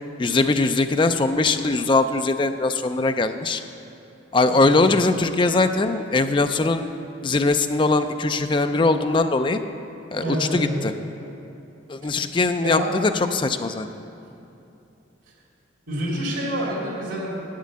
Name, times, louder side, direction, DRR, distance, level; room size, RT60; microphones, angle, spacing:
voice 1, 0.2-3.6 4.3-6.9 7.2-9.6 10.1-10.9 11.9-13.9, left 3 dB, 25° left, 8 dB, 0.4 m, -21 dB
voice 2, 10.2-10.7 12.1-12.3 12.6-12.9 15.9-17.4, right 1 dB, 85° right, -4 dB, 2.7 m, -27 dB
8.2 x 7.5 x 8.4 m, 2.8 s
head